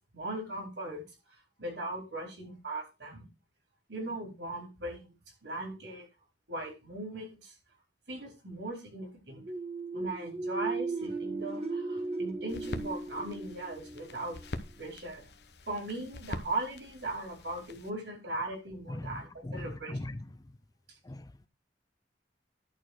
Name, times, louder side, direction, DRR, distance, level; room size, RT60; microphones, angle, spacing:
voice 1, 0.1-1.0 1.6-3.3 3.9-5.1 5.4-6.1 6.5-7.5 8.1-9.4 9.9-14.4 14.8-15.2 15.7-20.0, right 2 dB, 75° right, 4.6 m, -38 dB
sound 1, 9.3-15.0, right 3 dB, 35° right, 1.5 m, -37 dB
sound 2, 12.5-17.9, left 2 dB, 65° left, 1.0 m, -44 dB
voice 2, 18.9-20.2 21.0-21.5, left 1 dB, 20° left, 0.5 m, -40 dB
11.0 x 4.3 x 6.4 m
head